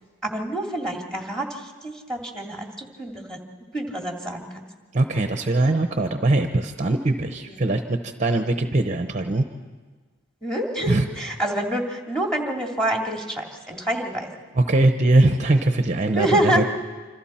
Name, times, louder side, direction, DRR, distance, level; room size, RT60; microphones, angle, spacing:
voice 1, 0.2-3.4 3.7-4.5 10.4-14.3 16.1-16.6, right 1 dB, 5° left, 1 dB, 2.3 m, -27 dB
voice 2, 4.9-9.4 10.9-11.0 14.5-16.7, right 2 dB, 35° right, 6 dB, 0.8 m, -21 dB
27.0 x 26.5 x 4.3 m, 1.4 s
head